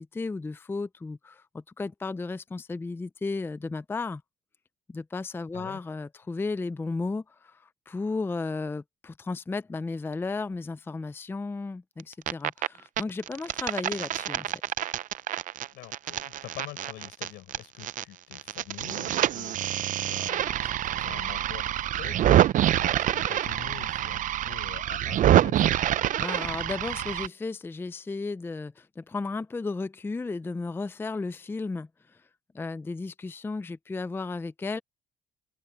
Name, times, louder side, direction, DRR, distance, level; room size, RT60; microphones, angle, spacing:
voice 1, 0.0-4.2 4.9-14.5 26.2-32.2 32.5-34.8, left 3 dB, 15° left, 0.5 m, -34 dB
sound 1, 12.0-12.7 13.0-18.0 18.3-27.3, right 12 dB, 50° right, 0.5 m, -26 dB
voice 2, 15.7-25.8, left 17 dB, 85° left, 4.8 m, -45 dB
open air
cardioid pair, 110°, 17 cm